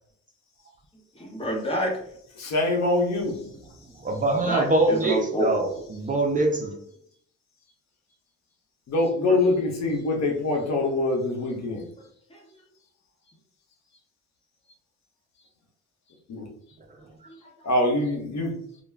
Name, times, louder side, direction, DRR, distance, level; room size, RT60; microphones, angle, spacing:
voice 1, 1.1-2.0 4.3-5.5 9.3-9.4 12.3-12.4 17.3-17.7, equal, 20° left, 0 dB, 0.9 m, -28 dB
voice 2, 2.4-3.5 8.9-11.9 16.3-16.5 17.6-18.6, left 2 dB, 65° left, 0 dB, 0.8 m, -24 dB
voice 3, 4.0-6.8, right 2 dB, 30° right, 2 dB, 0.4 m, -24 dB
2.3 x 2.1 x 3.2 m, 0.68 s
cardioid pair, 90°, 30 cm